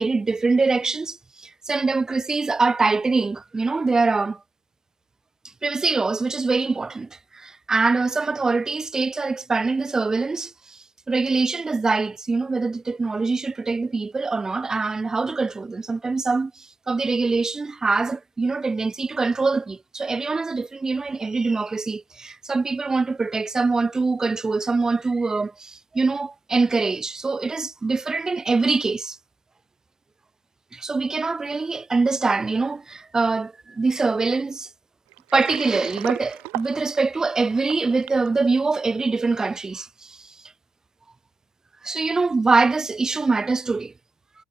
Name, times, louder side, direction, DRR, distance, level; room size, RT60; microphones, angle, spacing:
voice 1, 0.0-4.4 5.6-10.8 11.1-29.2 30.7-34.7 35.3-40.3 41.8-43.9, right 3 dB, 15° right, 4.6 m, -24 dB
Water, 35.1-38.3, right 26 dB, 80° right, 3.1 m, -35 dB
cardioid pair, 130°, 4 cm